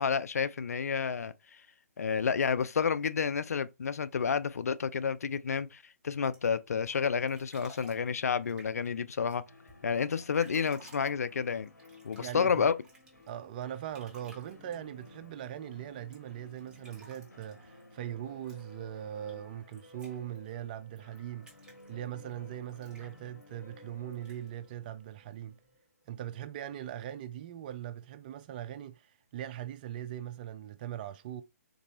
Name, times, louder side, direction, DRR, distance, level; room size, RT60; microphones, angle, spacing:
voice 1, 0.0-1.3 2.0-9.4 9.8-11.7 12.0-12.7, left 6 dB, 65° left, 0.4 m, -30 dB
sound 1, 6.3-25.8, right 2 dB, 10° right, 0.9 m, -60 dB
sound 2, 9.5-26.2, left 2 dB, 85° left, 0.8 m, -55 dB
voice 2, 12.2-12.7 13.3-21.5 21.9-25.6 26.1-31.4, right 11 dB, 35° right, 0.4 m, -40 dB
3.8 x 2.6 x 2.9 m
figure-of-eight pair, 135°, 9 cm